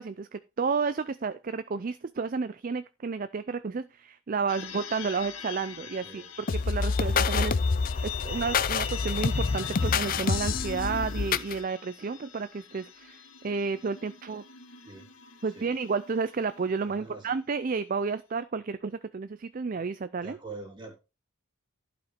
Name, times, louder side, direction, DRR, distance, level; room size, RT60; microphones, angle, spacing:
voice 1, 0.0-7.5 8.0-14.4 15.4-20.4, right 5 dB, 40° right, 13 dB, 0.4 m, -31 dB
sound 1, 4.5-17.0, left 9 dB, 70° left, 1.6 m, -43 dB
sound 2, 6.5-11.6, left 5 dB, 40° left, 0.4 m, -27 dB
voice 2, 7.0-7.6 14.8-15.1 15.5-15.7 16.9-17.3 20.2-20.9, right 3 dB, 20° right, 2 dB, 2.7 m, -44 dB
11.5 x 5.0 x 5.1 m, 0.29 s
head